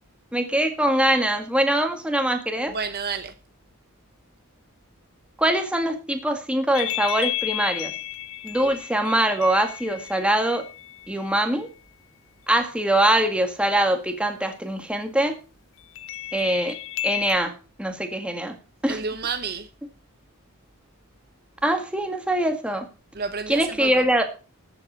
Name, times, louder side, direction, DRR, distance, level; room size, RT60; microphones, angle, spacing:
voice 1, 0.3-2.8 5.4-7.9 8.4-10.6 11.1-11.7 12.5-15.3 16.3-16.8 17.0-17.5 17.8-18.5 18.8-19.0 21.6-22.9 23.5-24.3, right 1 dB, 5° right, 1.9 m, -23 dB
voice 2, 2.7-3.3 8.6-8.7 18.9-19.7 23.1-24.0, right 5 dB, 45° right, 0.9 m, -30 dB
sound 1, 6.7-11.3 16.0-17.4, left 14 dB, 60° left, 0.5 m, -32 dB
13.5 x 8.0 x 5.5 m
head